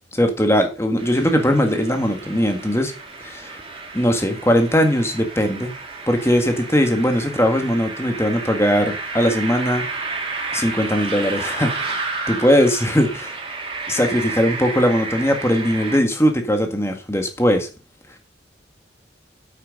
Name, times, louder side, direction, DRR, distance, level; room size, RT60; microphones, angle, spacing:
voice 1, 0.1-2.9 3.2-3.6 3.9-5.7 6.1-9.9 10.5-12.0 12.3-13.3 13.9-17.7, equal, 15° left, 5 dB, 1.7 m, -19 dB
sound 1, 1.0-16.0, right 3 dB, 30° right, 2.4 m, -31 dB
8.8 x 8.0 x 5.3 m, 0.34 s
head